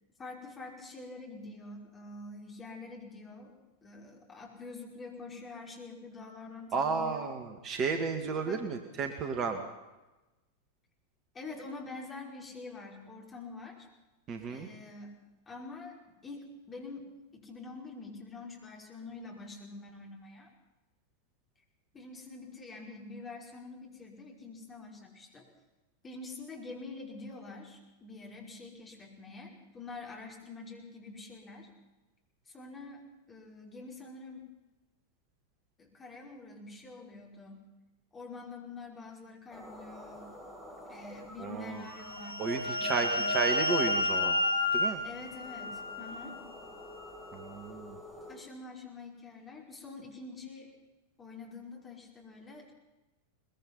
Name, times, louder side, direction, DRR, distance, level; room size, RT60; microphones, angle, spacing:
voice 1, 0.2-3.5 3.8-7.4 8.5-8.6 11.3-13.9 14.5-15.2 15.5-20.5 21.9-25.5 26.0-31.7 32.5-34.4 35.8-37.7 38.1-40.3 40.9-43.3 45.0-46.4 48.3-50.7 51.2-52.7, left 3 dB, 20° left, 0 dB, 5.4 m, -46 dB
voice 2, 6.7-9.6 14.3-14.7 41.4-41.9 42.4-44.4 44.7-45.0 47.3-48.0, right 5 dB, 30° right, 5 dB, 2.1 m, -33 dB
sound 1, 39.5-48.4, left 2 dB, 5° right, 7.3 m, -49 dB
sound 2, 41.9-46.4, left 2 dB, 65° right, 5.4 m, -31 dB
22.0 x 21.0 x 5.8 m, 1.1 s
figure-of-eight pair, 90°, 0 cm